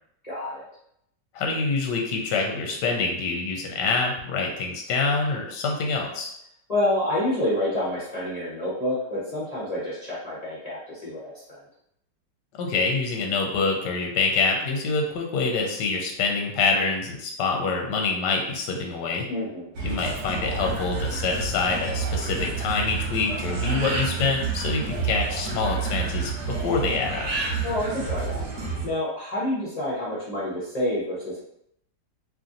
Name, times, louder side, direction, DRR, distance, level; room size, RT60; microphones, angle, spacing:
voice 1, 0.2-0.7 6.7-11.6 19.3-19.7 27.6-28.5 28.8-31.4, left 1 dB, 35° left, -9 dB, 0.6 m, -28 dB
voice 2, 1.3-6.3 12.6-19.2 19.8-27.3, left 4 dB, 75° left, 1 dB, 1.1 m, -26 dB
sound 1, 19.7-28.9, right 4 dB, 60° right, 1.0 m, -29 dB
3.0 x 2.6 x 2.5 m, 0.74 s
omnidirectional pair, 1.9 m